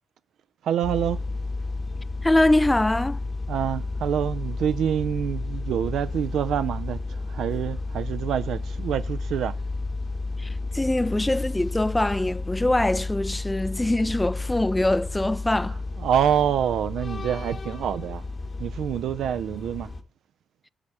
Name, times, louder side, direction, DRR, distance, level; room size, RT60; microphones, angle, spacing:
voice 1, 0.6-1.3 3.5-9.6 16.0-18.2 18.6-19.9, right 9 dB, 75° right, 0.3 m, -26 dB
sound 1, 0.8-20.0, left 3 dB, 35° left, 1.0 m, -32 dB
voice 2, 2.2-3.2 10.4-15.8, left 1 dB, 10° left, 0.3 m, -23 dB
9.7 x 4.3 x 4.7 m
cardioid pair, 90°, 0 cm